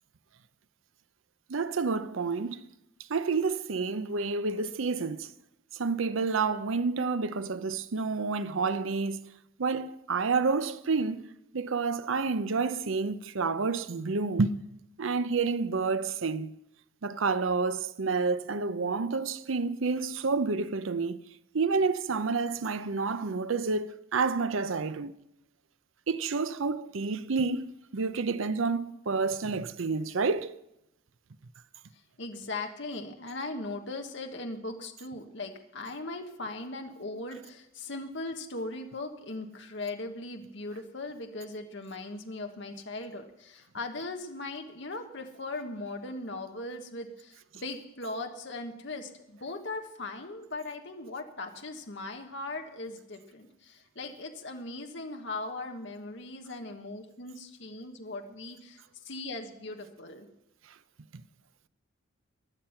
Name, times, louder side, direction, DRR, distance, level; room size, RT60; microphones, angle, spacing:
voice 1, 1.5-2.7 3.1-5.3 5.7-9.3 9.6-14.6 15.0-16.6 17.0-21.2 21.5-25.2 26.1-30.6, right 4 dB, 75° right, 0.7 m, -29 dB
voice 2, 31.9-60.3, left 2 dB, 60° left, 1.3 m, -39 dB
16.0 x 10.5 x 5.8 m
head